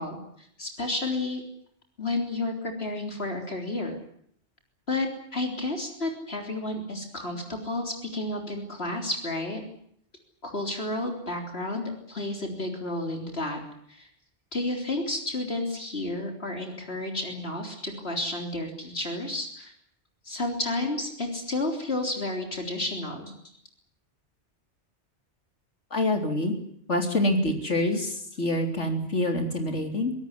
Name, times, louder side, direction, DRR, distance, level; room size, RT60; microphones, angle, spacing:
voice 1, 0.0-1.4 2.0-4.0 4.9-9.6 10.4-13.6 13.9-14.1 14.5-19.7 20.2-23.3, left 2 dB, 60° left, 3 dB, 3.9 m, -31 dB
voice 2, 25.9-26.5 26.9-30.1, left 1 dB, 80° left, 4 dB, 3.8 m, -26 dB
24.0 x 18.0 x 9.6 m, 0.67 s
omnidirectional pair, 1.2 m